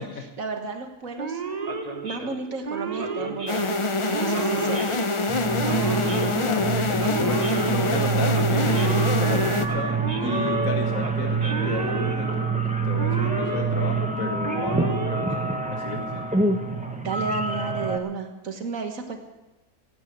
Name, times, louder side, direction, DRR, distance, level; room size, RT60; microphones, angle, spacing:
voice 1, 0.0-1.4 2.0-3.8 4.1-4.8 17.0-19.2, right 4 dB, 75° right, 5 dB, 1.9 m, -32 dB
Male speech man speaking / Siren, 1.2-15.9, right 4 dB, 30° right, 1.0 m, -33 dB
sound 1, 3.5-9.7, left 2 dB, 30° left, 0.6 m, -25 dB
sound 2, 5.3-18.0, right 4 dB, 5° right, 1.1 m, -26 dB
voice 2, 5.9-12.5 12.8-16.3, left 4 dB, 75° left, 3 dB, 1.8 m, -33 dB
16.5 x 9.4 x 8.1 m, 1.1 s
omnidirectional pair, 1.4 m